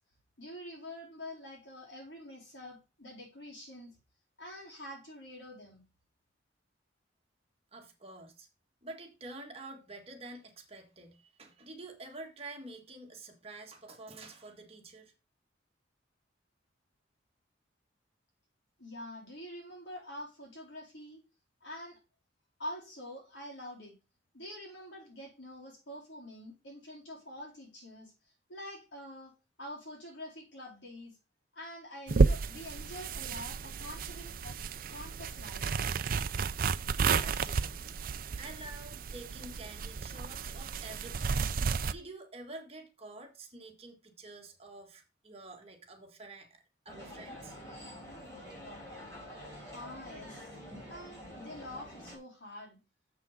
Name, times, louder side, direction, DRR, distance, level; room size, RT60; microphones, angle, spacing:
voice 1, 0.4-4.0 4.4-5.8 18.8-21.2 21.6-22.0 22.6-23.9 24.3-28.1 28.5-31.2 31.5-34.6 34.9-35.8 49.7-50.6 50.9-52.8, left 1 dB, 80° left, 4.2 m, -46 dB
voice 2, 7.7-8.5 8.8-15.1 37.1-38.0 38.4-41.4 41.9-47.6, right 2 dB, 35° right, 1.8 m, -48 dB
sound 1, 32.1-41.9, right 5 dB, 50° right, 0.5 m, -32 dB
sound 2, 46.9-52.2, equal, 20° left, 4.3 m, -47 dB
7.4 x 6.1 x 4.9 m
head